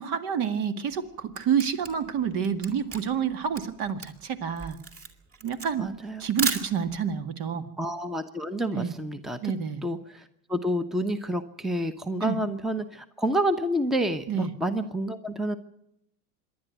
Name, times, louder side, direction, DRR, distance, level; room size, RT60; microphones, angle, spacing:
voice 1, 0.0-4.8 5.4-5.9 6.2-7.7 8.7-8.9 9.4-9.8 12.2-12.4 14.3-14.5, right 7 dB, 45° right, 8 dB, 2.0 m, -28 dB
Camera, 0.9-7.1, right 4 dB, 30° right, 3.0 m, -35 dB
voice 2, 5.8-6.2 7.8-9.4 9.8-10.2 10.5-15.6, right 1 dB, ahead, 10 dB, 1.1 m, -29 dB
26.0 x 11.0 x 9.2 m, 0.80 s
hypercardioid pair, 95°, 46 cm